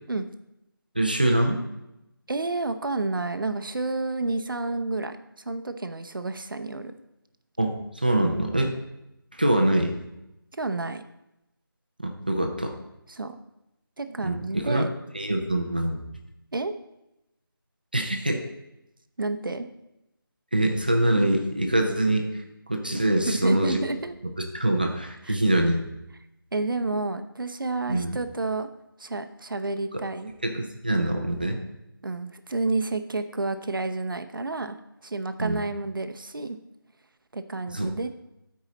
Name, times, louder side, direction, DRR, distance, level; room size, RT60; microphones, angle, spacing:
voice 1, 1.0-1.6 7.6-8.7 9.3-9.9 12.0-12.7 14.2-14.9 15.1-16.0 17.9-18.5 20.5-22.3 22.7-23.8 24.4-25.8 27.9-28.2 30.4-31.6 35.4-35.6 37.7-37.9, right 1 dB, 25° right, 3 dB, 0.5 m, -24 dB
voice 2, 2.3-6.9 10.6-11.0 13.1-13.4 14.0-14.9 16.5-16.7 19.2-19.7 23.3-24.2 25.3-25.4 26.5-28.7 29.0-30.3 32.0-34.8 35.0-36.6 37.3-38.1, right 3 dB, 60° right, 9 dB, 0.7 m, -30 dB
12.5 x 4.8 x 4.0 m, 0.90 s
figure-of-eight pair, 175°, 12 cm